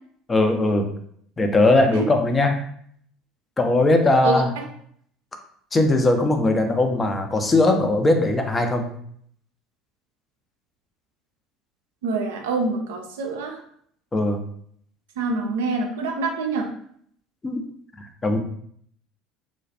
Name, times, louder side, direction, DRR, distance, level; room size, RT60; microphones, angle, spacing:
voice 1, 0.3-0.9 1.4-2.6 3.6-4.5 5.7-8.9 14.1-14.4 17.4-17.6 18.0-18.4, left 2 dB, 25° left, 5 dB, 0.4 m, -19 dB
voice 2, 4.2-4.6 12.0-13.6 15.2-16.7, right 3 dB, 75° right, 3 dB, 0.4 m, -26 dB
2.3 x 2.1 x 2.6 m, 0.65 s
hypercardioid pair, 65°, 0 cm